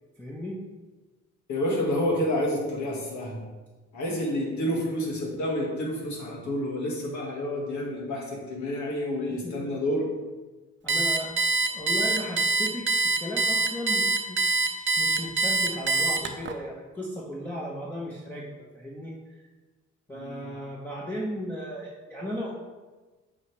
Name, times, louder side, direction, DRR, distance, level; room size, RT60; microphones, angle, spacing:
voice 1, 0.2-0.6 9.3-9.7 10.8-11.4 11.7-19.4 20.1-22.5, equal, 5° left, -5 dB, 1.1 m, -36 dB
voice 2, 1.5-3.4 3.9-10.1 20.1-20.5, left 1 dB, 70° left, -1 dB, 2.1 m, -29 dB
Alarm, 10.9-16.5, right 3 dB, 40° right, 0.7 m, -24 dB
8.1 x 5.8 x 3.4 m, 1.2 s
cardioid pair, 90°, 30 cm